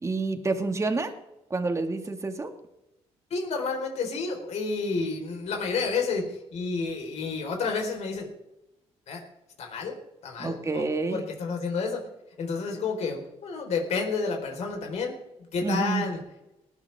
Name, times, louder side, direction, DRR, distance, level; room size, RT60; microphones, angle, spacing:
voice 1, 0.0-1.1 1.5-2.5 10.4-11.2 15.6-16.0, right 3 dB, 25° right, 6 dB, 1.9 m, -28 dB
voice 2, 3.3-8.3 9.1-9.2 9.6-9.9 10.2-12.0 12.4-15.2 15.5-16.2, left 4 dB, 70° left, 2 dB, 4.3 m, -30 dB
19.5 x 11.5 x 3.6 m, 0.91 s
cardioid pair, 90°, 12 cm